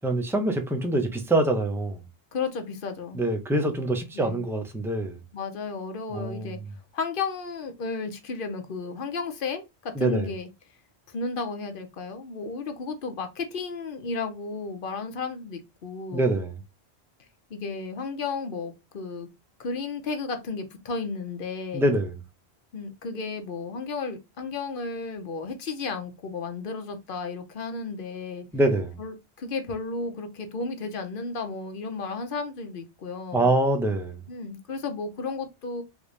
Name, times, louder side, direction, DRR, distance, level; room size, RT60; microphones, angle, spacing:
voice 1, 0.0-2.0 3.1-5.2 6.1-6.5 10.0-10.3 16.1-16.5 21.7-22.1 28.5-29.0 33.3-34.2, right 2 dB, 5° right, 0.4 m, -25 dB
voice 2, 2.3-3.2 4.1-4.4 5.3-6.6 6.9-10.5 11.1-16.3 17.5-19.3 19.6-21.9 22.7-28.5 29.0-33.5 34.3-35.8, left 4 dB, 60° left, 0.8 m, -33 dB
3.4 x 2.6 x 3.1 m
omnidirectional pair, 1.1 m